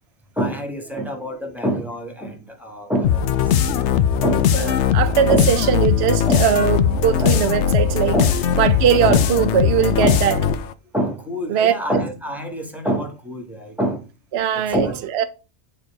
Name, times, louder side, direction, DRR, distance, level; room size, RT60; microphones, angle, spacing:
voice 1, 0.4-4.5 5.3-5.5 6.3-6.5 7.2-7.4 8.1-8.4 9.1-9.3 10.0-10.2 10.9-14.0 14.5-15.0, right 1 dB, ahead, 1.4 m, -26 dB
sound 1, 3.0-10.7, left 8 dB, 80° left, 0.9 m, -19 dB
voice 2, 4.6-8.1 8.6-10.4 11.5-11.8 14.3-14.9 15.1-15.2, right 9 dB, 70° right, 0.8 m, -20 dB
9.1 x 3.3 x 4.6 m
omnidirectional pair, 1.2 m